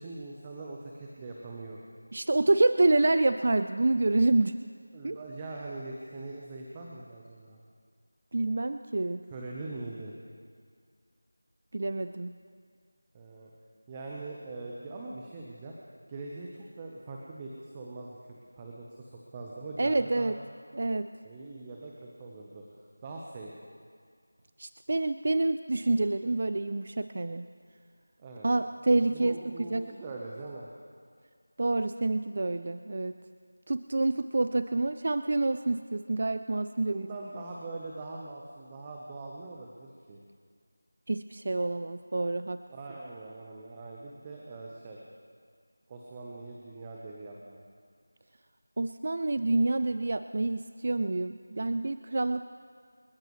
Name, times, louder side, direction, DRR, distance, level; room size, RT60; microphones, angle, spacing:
voice 1, 0.0-1.8 4.9-7.6 9.3-10.1 13.1-13.5 13.9-15.7 16.1-16.5 16.8-18.1 18.5-20.4 21.2-22.6 23.0-23.5 28.2-28.5 29.1-30.7 36.9-40.2 42.7-45.0 45.9-47.6, right 3 dB, 15° right, -2 dB, 1.0 m, -42 dB
voice 2, 2.1-4.6 5.0-5.2 8.3-9.2 11.7-12.3 19.8-20.4 20.7-21.1 24.6-27.5 28.4-29.9 31.6-33.1 33.7-37.1 41.1-42.6 48.8-52.5, right 2 dB, 40° right, 11 dB, 0.4 m, -27 dB
29.0 x 10.0 x 3.2 m, 2.1 s
figure-of-eight pair, 175°, 0 cm